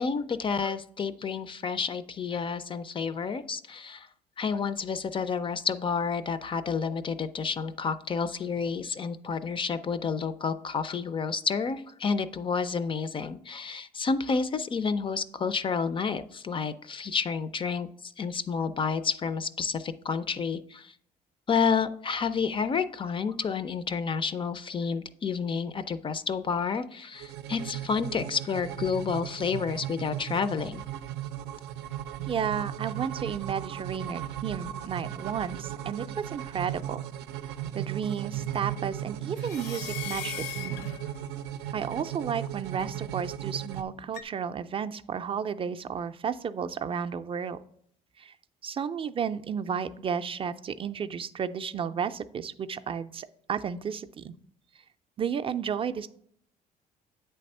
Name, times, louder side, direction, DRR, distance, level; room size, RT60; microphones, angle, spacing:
voice 1, 0.0-4.1 4.4-20.9 21.5-30.8, left 5 dB, 30° left, 13 dB, 0.4 m, -30 dB
sound 1, 27.2-43.8, right 11 dB, 85° right, 0.5 m, -36 dB
voice 2, 32.3-37.0 37.7-40.9 41.7-47.6 48.2-48.3 48.6-54.3 55.2-56.1, right 7 dB, 35° right, 11 dB, 0.4 m, -33 dB
sound 2, 39.4-41.5 44.1-44.2, left 10 dB, 80° left, 0.6 m, -39 dB
8.4 x 3.4 x 5.4 m, 0.65 s
cardioid pair, 110°, 17 cm